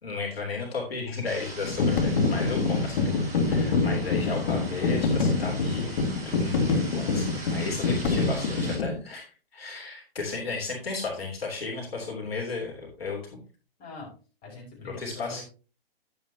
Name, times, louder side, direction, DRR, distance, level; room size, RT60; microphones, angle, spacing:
voice 1, 0.0-3.1 3.5-5.9 6.2-6.6 6.9-9.3 9.5-13.4 14.8-15.4, left 4 dB, 75° left, 0 dB, 3.3 m, -34 dB
sound 1, 1.2-8.8, right 2 dB, 10° right, 5.3 m, -41 dB
sound 2, 1.6-9.0, left 3 dB, 60° left, 1.9 m, -26 dB
voice 2, 13.8-14.1 14.4-15.4, left 3 dB, 30° left, -2 dB, 5.1 m, -43 dB
11.0 x 8.4 x 2.8 m, 0.35 s
figure-of-eight pair, 125°, 30 cm